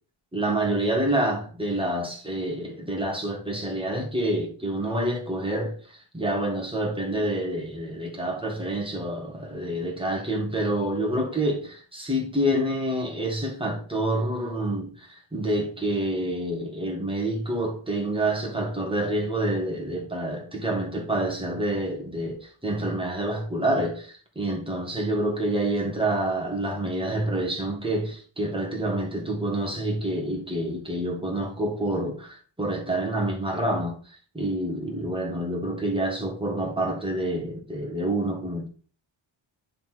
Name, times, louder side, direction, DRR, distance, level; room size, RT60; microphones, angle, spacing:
voice 1, 0.3-38.7, right 1 dB, 10° right, 1.8 m, -27 dB
9.8 x 4.1 x 4.5 m
wide cardioid pair, 165°, 48 cm